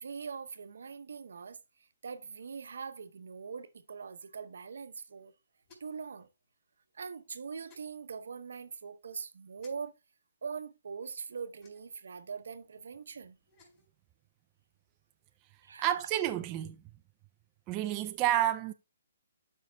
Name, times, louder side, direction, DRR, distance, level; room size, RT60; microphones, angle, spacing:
voice 1, 0.0-1.6 2.0-5.3 5.8-6.3 6.9-9.9 10.4-13.4 15.6-16.0, right 5 dB, 75° right, 0.9 m, -42 dB
sound 1, 5.6-6.1 7.7-7.9 9.6-9.7 11.6-12.0 13.4-13.9, left 3 dB, 30° left, 4.5 m, -60 dB
voice 2, 15.8-16.8 17.7-18.7, right 13 dB, 20° right, 0.4 m, -30 dB
12.0 x 5.5 x 2.3 m
hypercardioid pair, 160°, 0 cm